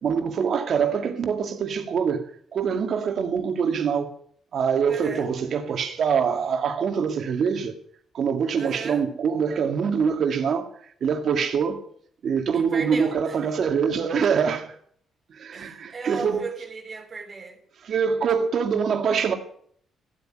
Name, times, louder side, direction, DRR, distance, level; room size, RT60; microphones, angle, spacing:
voice 1, 0.0-4.1 4.5-7.8 8.1-10.7 11.0-11.8 12.2-14.7 15.3-16.5 17.9-19.3, right 6 dB, 60° right, 2.3 m, -24 dB
voice 2, 4.9-5.3 8.6-9.0 12.5-13.4 15.5-17.6, right 4 dB, 40° right, 3.0 m, -35 dB
15.0 x 8.7 x 9.2 m
cardioid pair, 90°, 0 cm